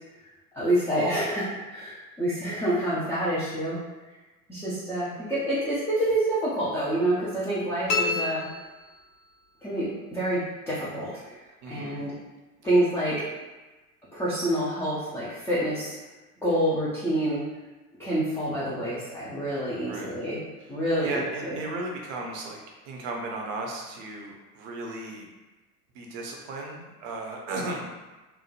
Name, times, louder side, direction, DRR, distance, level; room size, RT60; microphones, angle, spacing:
voice 1, 0.5-3.8 4.5-8.5 9.6-10.4 10.7-11.4 11.7-12.2 12.6-13.3 14.1-15.9 16.4-17.4 18.0-20.4 20.7-21.6, right 1 dB, 5° left, -10 dB, 0.4 m, -27 dB
sound 1, 7.9-9.4, left 4 dB, 50° left, 0.6 m, -30 dB
voice 2, 11.6-12.0 19.8-20.2 20.6-20.7 21.0-22.6 22.8-25.3 25.9-27.9, right 2 dB, 50° right, 0 dB, 0.7 m, -35 dB
3.1 x 2.0 x 2.4 m, 1.2 s
figure-of-eight pair, 70°, 46 cm